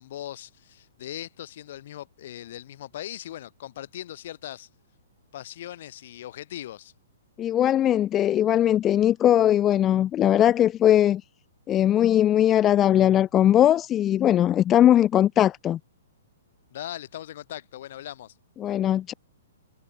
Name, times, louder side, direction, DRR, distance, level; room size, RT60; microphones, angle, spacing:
voice 1, 0.0-4.7 5.3-6.9 16.7-18.3, left 12 dB, 50° left, 5.0 m, -39 dB
voice 2, 7.4-11.2 11.7-15.8 18.6-19.1, left 11 dB, 20° left, 0.7 m, -20 dB
hypercardioid pair, 155°, 0 cm